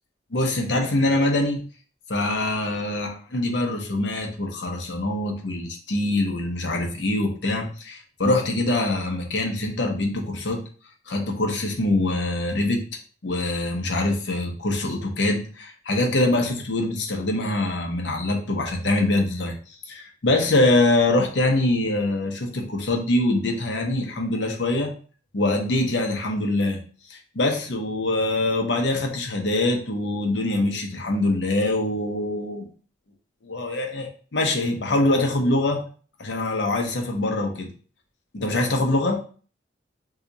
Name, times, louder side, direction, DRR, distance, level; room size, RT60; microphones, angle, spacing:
voice 1, 0.3-1.6 2.1-10.6 11.1-12.9 13.2-19.6 19.9-24.9 25.3-26.8 27.1-32.7 33.4-35.8 36.2-37.7 38.3-39.2, left 2 dB, 70° left, 2 dB, 0.7 m, -24 dB
2.8 x 2.4 x 3.8 m, 0.41 s
head